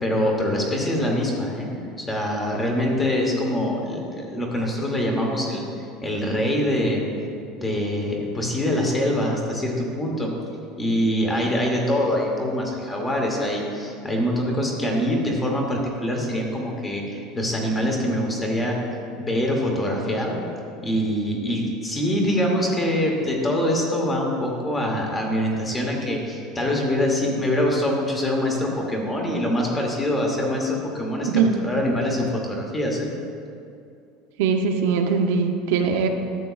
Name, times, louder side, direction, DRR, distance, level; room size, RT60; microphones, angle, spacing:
voice 1, 0.0-1.7 2.0-5.6 6.0-7.0 7.6-10.3 10.8-18.8 19.2-20.3 20.8-33.1, left 1 dB, 10° left, 0 dB, 1.0 m, -24 dB
voice 2, 31.2-31.5 34.4-36.1, right 5 dB, 70° right, 4 dB, 0.6 m, -21 dB
12.0 x 8.0 x 2.4 m, 2.4 s
cardioid pair, 175°, 0 cm